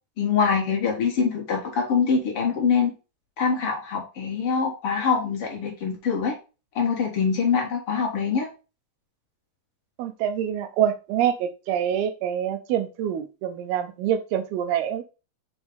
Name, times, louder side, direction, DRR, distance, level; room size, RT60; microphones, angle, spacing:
voice 1, 0.2-2.9 3.4-6.4 6.7-8.5, left 6 dB, 50° left, 0 dB, 1.8 m, -24 dB
voice 2, 10.0-15.0, right 10 dB, 80° right, 9 dB, 2.6 m, -26 dB
6.3 x 4.9 x 3.5 m, 0.30 s
omnidirectional pair, 4.8 m